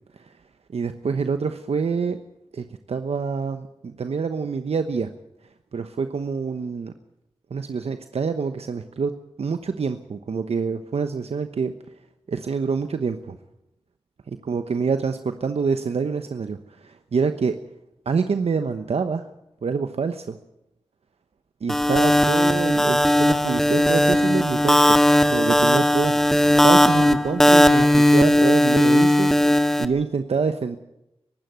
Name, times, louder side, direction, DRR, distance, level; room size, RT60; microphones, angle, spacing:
voice 1, 0.7-2.2 2.5-5.1 5.7-6.9 7.5-9.1 9.4-11.7 12.3-13.4 14.5-17.6 18.0-19.3 19.6-20.4 21.6-25.0 25.3-26.2 26.6-30.8, right 5 dB, 70° right, 8 dB, 1.0 m, -26 dB
sound 1, 21.7-29.8, left 1 dB, 5° left, 1.7 m, -17 dB
23.5 x 12.5 x 9.4 m, 0.86 s
cardioid pair, 40°, 11 cm